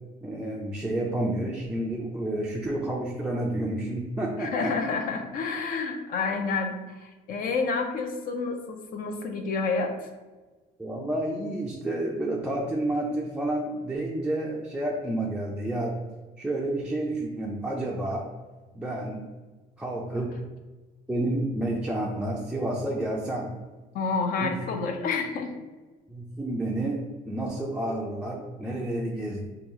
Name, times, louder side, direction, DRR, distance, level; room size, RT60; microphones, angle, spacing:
voice 1, 0.2-4.7 10.8-16.0 16.4-18.3 18.7-19.2 19.8-20.4 21.1-23.5 24.4-24.6 26.1-29.5, right 1 dB, 5° right, -3 dB, 0.3 m, -30 dB
voice 2, 4.4-10.1 23.9-25.5, left 4 dB, 55° left, 5 dB, 0.5 m, -29 dB
2.9 x 2.3 x 3.5 m, 1.3 s
cardioid pair, 110°, 17 cm